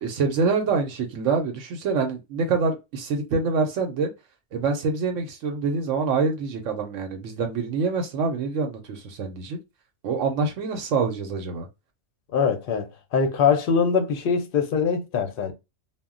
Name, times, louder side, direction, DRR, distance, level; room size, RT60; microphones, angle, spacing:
voice 1, 0.0-4.1 4.5-9.6 10.0-11.7, right 4 dB, 70° right, 0.9 m, -26 dB
voice 2, 12.3-15.5, left 6 dB, 55° left, 0.6 m, -23 dB
2.2 x 2.1 x 3.6 m
omnidirectional pair, 1.4 m